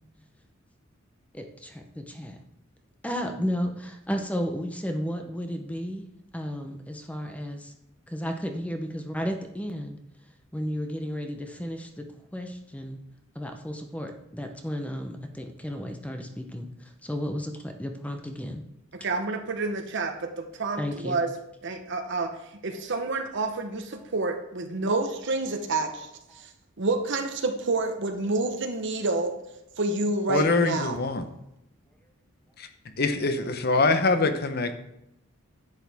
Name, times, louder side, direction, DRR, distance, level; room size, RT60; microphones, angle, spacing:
voice 1, 1.3-2.4 3.0-6.1 6.3-7.7 8.1-10.0 10.5-13.0 13.3-16.7 17.0-18.6 20.8-21.2 26.3-26.4, equal, 5° left, 5 dB, 0.7 m, -33 dB
voice 2, 18.9-21.3 21.6-22.3 22.6-26.1 26.3-26.5 26.8-29.4 29.8-31.0, right 3 dB, 60° right, 5 dB, 0.9 m, -28 dB
voice 3, 30.3-31.2 32.6-32.7 33.0-34.7, left 3 dB, 50° left, 9 dB, 0.9 m, -24 dB
10.5 x 8.3 x 3.5 m, 0.84 s
head